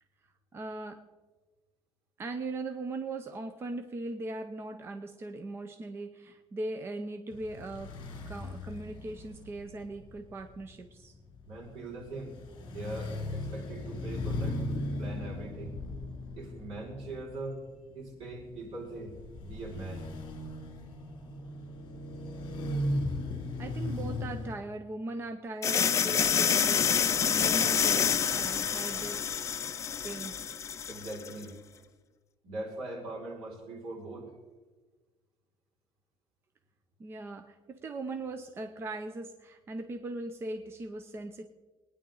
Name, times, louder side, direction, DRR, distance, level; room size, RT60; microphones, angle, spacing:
voice 1, 0.5-1.0 2.2-8.0 8.3-11.2 23.6-29.3 30.0-30.3 37.0-41.4, right 2 dB, 25° right, 7 dB, 0.7 m, -39 dB
sound 1, 7.3-24.6, left 1 dB, 50° left, 2.7 m, -38 dB
voice 2, 11.4-12.3 12.6-14.6 15.0-15.8 16.4-17.6 17.9-20.1 30.9-31.6 32.4-34.3, right 2 dB, 70° right, -3 dB, 5.7 m, -41 dB
sound 2, 25.6-31.3, left 7 dB, 30° left, 0.6 m, -27 dB
22.5 x 10.0 x 3.9 m, 1.3 s
cardioid pair, 170°, 10 cm